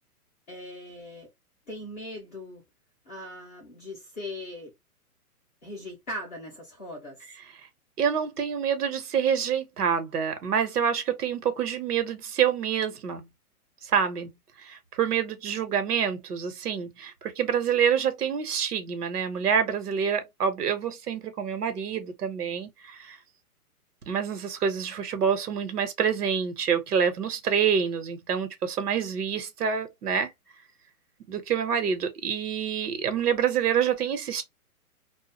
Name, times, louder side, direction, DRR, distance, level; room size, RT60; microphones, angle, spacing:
voice 1, 0.5-1.3 1.7-2.6 3.1-4.7 5.6-7.2, left 1 dB, 10° left, 0.5 m, -39 dB
voice 2, 8.0-13.3 13.8-14.3 14.6-23.2 24.1-30.3 31.3-34.4, right 7 dB, 80° right, 1.1 m, -27 dB
2.3 x 2.3 x 2.9 m
hypercardioid pair, 155°, 45 cm